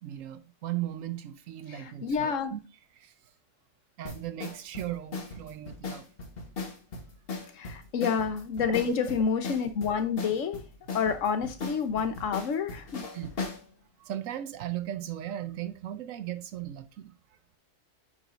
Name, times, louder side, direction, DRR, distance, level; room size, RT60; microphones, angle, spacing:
voice 1, 0.0-2.6 3.0-3.1 4.0-6.1 13.1-13.3 14.0-17.1, right 12 dB, 70° right, 1.0 m, -37 dB
voice 2, 1.7-2.5 7.5-10.6 10.9-13.1, left 6 dB, 65° left, 1.2 m, -29 dB
sound 1, 4.0-13.6, left 4 dB, 45° left, 1.3 m, -38 dB
9.1 x 4.9 x 2.5 m
omnidirectional pair, 1.5 m